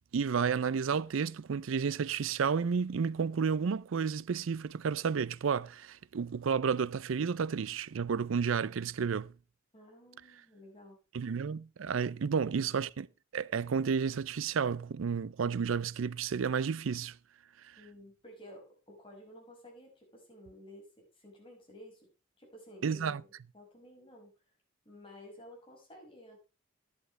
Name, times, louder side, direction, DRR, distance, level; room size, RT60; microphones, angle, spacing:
voice 1, 0.1-9.3 11.1-13.1 13.3-17.2 17.6-17.8 22.8-23.2, right 6 dB, 85° right, 0.5 m, -31 dB
voice 2, 9.7-11.0 12.3-12.7 17.8-22.1 22.4-23.2 23.5-24.3 24.9-26.4, left 1 dB, 25° left, 5.4 m, -53 dB
11.5 x 10.5 x 3.2 m
head